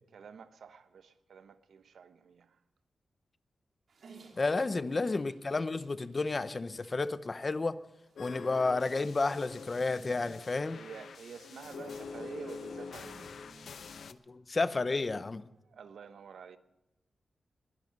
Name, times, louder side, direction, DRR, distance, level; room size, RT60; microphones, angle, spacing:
voice 1, 0.1-2.6 4.6-5.1 10.7-13.3 15.6-16.6, right 6 dB, 85° right, 1.0 m, -49 dB
Dog, 3.9-9.2, right 4 dB, 70° right, 2.7 m, -60 dB
voice 2, 4.4-7.8 8.2-10.8 14.3-15.5, left 3 dB, 30° left, 0.7 m, -31 dB
sound 1, 8.1-14.1, left 5 dB, 75° left, 0.8 m, -46 dB
sound 2, 9.6-10.5 11.0-11.1 11.3-11.4 11.6-14.0 14.3-15.2, right 1 dB, 20° right, 4.8 m, -57 dB
21.5 x 11.0 x 5.3 m
wide cardioid pair, 145°, 0 cm